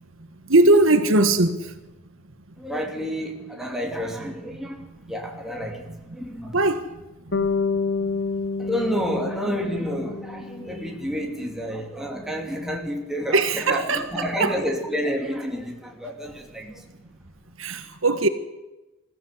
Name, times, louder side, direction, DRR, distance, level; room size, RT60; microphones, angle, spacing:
voice 1, 0.5-1.8 6.5-6.9 7.4-7.5 13.3-14.6 17.6-18.3, right 2 dB, 70° right, 1.6 m, -20 dB
voice 2, 2.6-6.5 8.6-16.8, equal, ahead, 2.7 m, -30 dB
Bass guitar, 7.3-11.4, left 4 dB, 55° left, 1.5 m, -28 dB
21.5 x 15.5 x 8.2 m
head